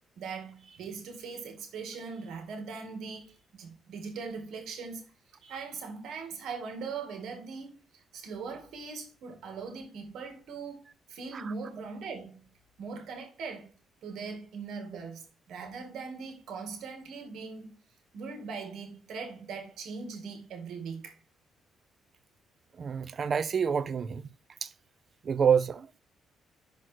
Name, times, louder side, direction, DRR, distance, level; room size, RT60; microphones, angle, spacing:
voice 1, 0.2-5.1 5.4-10.8 11.1-12.5 12.8-13.7 14.0-17.8 18.1-21.2, right 5 dB, 75° right, 2.2 m, -40 dB
voice 2, 22.8-24.2 24.6-24.7 25.2-26.0, right 7 dB, 50° right, 0.6 m, -27 dB
6.0 x 5.2 x 4.5 m
cardioid pair, 90°, 0 cm